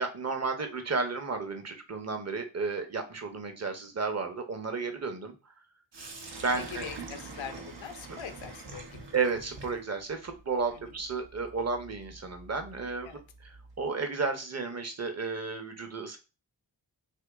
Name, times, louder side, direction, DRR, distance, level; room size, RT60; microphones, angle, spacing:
voice 1, 0.0-5.5 6.4-6.9 9.1-13.1 13.8-16.2, right 4 dB, 35° right, 5 dB, 0.9 m, -32 dB
Sink (filling or washing), 5.9-13.8, right 3 dB, 70° right, 1.0 m, -46 dB
voice 2, 6.5-9.1 10.7-10.9 13.0-13.2, left 8 dB, 90° left, 8 dB, 0.7 m, -43 dB
2.9 x 2.8 x 3.6 m, 0.30 s
cardioid pair, 45°, 45 cm